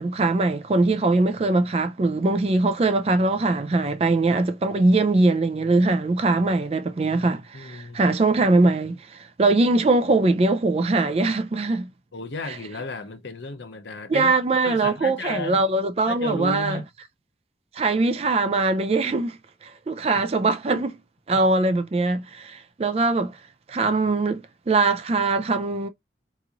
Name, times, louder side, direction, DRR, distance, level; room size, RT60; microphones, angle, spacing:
voice 1, 0.0-11.9 14.1-16.8 17.8-21.0 21.3-23.4 23.7-25.9, right 3 dB, 35° right, 0.3 m, -22 dB
voice 2, 7.1-8.0 12.1-14.4 14.6-15.6 16.1-16.9 20.1-20.2 21.3-21.4, left 2 dB, 75° left, 0.7 m, -34 dB
3.8 x 3.0 x 2.3 m
head